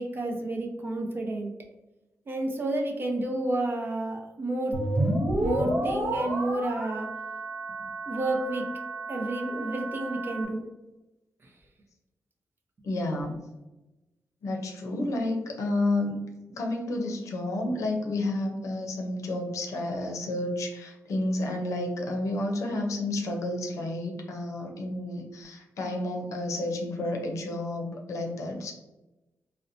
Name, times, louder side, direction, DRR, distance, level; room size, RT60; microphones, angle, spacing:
voice 1, 0.0-1.5 2.3-4.7 5.4-7.1 8.1-8.6 9.1-10.6, right 1 dB, 45° right, 1 dB, 0.6 m, -30 dB
sound 1, 4.7-10.4, right 1 dB, 75° right, 0.9 m, -31 dB
voice 2, 12.8-13.4 14.4-16.2 16.5-28.7, left 2 dB, 80° left, 1 dB, 0.6 m, -30 dB
4.0 x 2.1 x 2.6 m, 1.0 s
wide cardioid pair, 115°, 5 cm